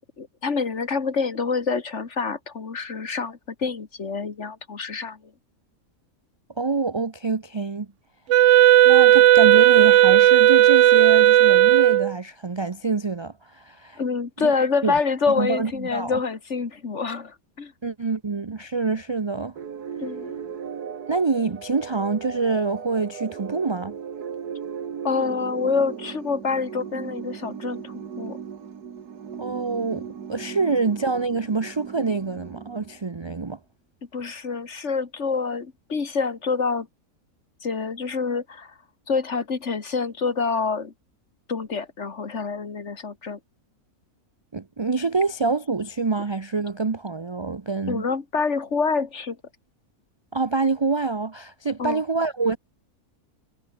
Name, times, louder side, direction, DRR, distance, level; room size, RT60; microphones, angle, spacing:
voice 1, 0.2-5.2 14.0-17.7 20.0-20.3 25.0-28.4 34.1-36.9 37.6-38.7 39.1-40.9 41.5-43.4 47.9-49.4 51.8-52.0, left 5 dB, 50° left, 2.2 m, -26 dB
voice 2, 6.6-7.9 8.8-14.0 14.4-15.0 15.3-16.2 17.8-19.6 21.1-24.0 29.4-33.6 44.5-48.1 50.3-52.6, right 4 dB, 30° right, 0.5 m, -26 dB
Wind instrument woodwind instrument, 8.3-12.1, right 13 dB, 65° right, 0.8 m, -14 dB
sound 1, 19.6-33.3, right 7 dB, 80° right, 2.1 m, -37 dB
omnidirectional pair, 1.6 m